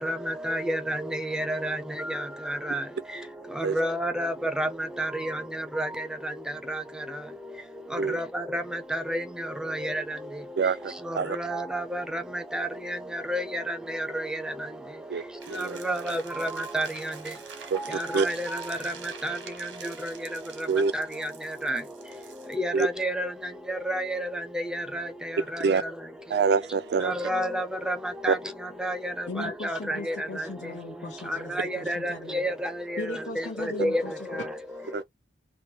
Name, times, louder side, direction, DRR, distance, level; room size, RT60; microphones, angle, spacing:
voice 1, 0.0-2.9 3.1-6.3 6.7-6.8 7.1-7.2 7.9-10.2 10.8-14.7 15.5-17.3 17.7-20.7 20.9-21.8 22.5-25.9 27.0-30.5 31.3-34.5, right 1 dB, 5° right, 0.5 m, -31 dB
voice 2, 10.6-11.4 15.1-15.8 17.7-17.8 18.1-18.3 20.7-20.9 22.7-22.9 25.6-25.8 26.3-27.1 28.3-28.4 34.9-35.0, right 5 dB, 60° right, 0.3 m, -25 dB
Dropping nails from a box., 15.4-22.5, right 6 dB, 85° right, 1.0 m, -46 dB
voice 3, 29.3-32.4 33.0-35.0, left 2 dB, 80° left, 1.0 m, -39 dB
3.0 x 2.2 x 2.9 m
head